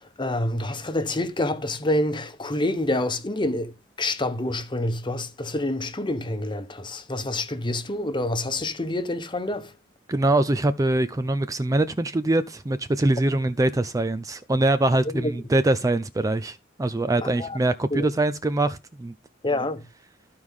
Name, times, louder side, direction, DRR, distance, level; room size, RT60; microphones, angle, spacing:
voice 1, 0.0-3.7 4.0-9.7 15.1-15.3 17.2-17.6 17.9-18.1 19.4-19.8, left 1 dB, 25° left, 1.0 m, -27 dB
voice 2, 10.1-19.1, right 2 dB, 20° right, 0.4 m, -23 dB
14.0 x 4.8 x 3.6 m
head